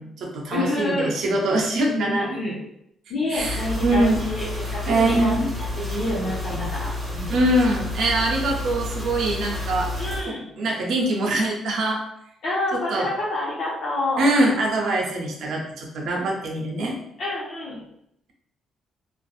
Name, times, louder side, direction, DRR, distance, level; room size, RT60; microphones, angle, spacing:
voice 1, 0.0-2.4 3.3-4.2 4.9-5.5 7.3-9.9 10.3-12.0 12.7-13.1 14.2-17.0, right 1 dB, 75° right, 0 dB, 0.6 m, -23 dB
voice 2, 0.5-1.1 1.9-2.6 3.1-4.5 4.7-5.3 5.8-7.5 10.0-10.4 12.4-14.3 17.2-17.8, left 1 dB, 65° left, -6 dB, 0.9 m, -28 dB
sound 1, 3.4-10.2, left 2 dB, 25° right, 1.2 m, -30 dB
2.6 x 2.4 x 2.3 m, 0.75 s
cardioid pair, 90°, 0 cm